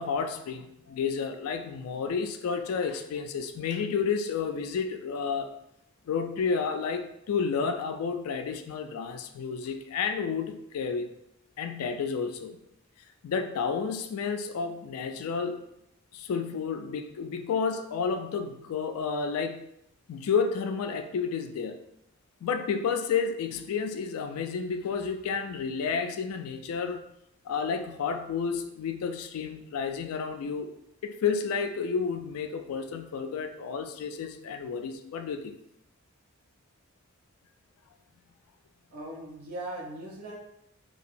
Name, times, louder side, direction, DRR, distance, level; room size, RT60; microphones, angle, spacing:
voice 1, 0.0-5.5 6.1-11.1 11.6-12.6 13.2-15.7 16.1-19.7 20.1-21.8 22.4-27.0 27.4-30.7 31.0-35.5, left 5 dB, 75° left, 7 dB, 0.3 m, -31 dB
voice 2, 38.9-40.4, right 1 dB, 70° right, -3 dB, 0.8 m, -39 dB
2.7 x 2.2 x 2.5 m, 0.79 s
head